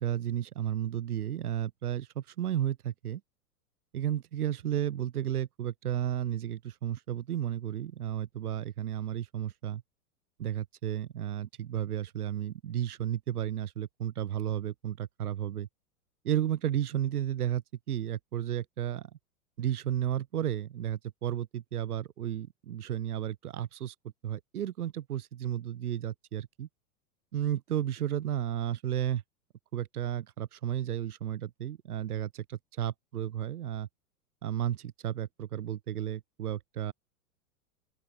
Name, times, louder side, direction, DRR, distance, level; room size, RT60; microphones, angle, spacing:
voice 1, 0.0-3.2 3.9-9.8 10.4-15.7 16.2-17.6 17.9-19.1 19.6-23.9 24.2-26.7 27.3-29.2 29.7-33.9 34.4-36.9, right 11 dB, 80° right, 1.1 m, -33 dB
open air
hypercardioid pair, 100°, 44 cm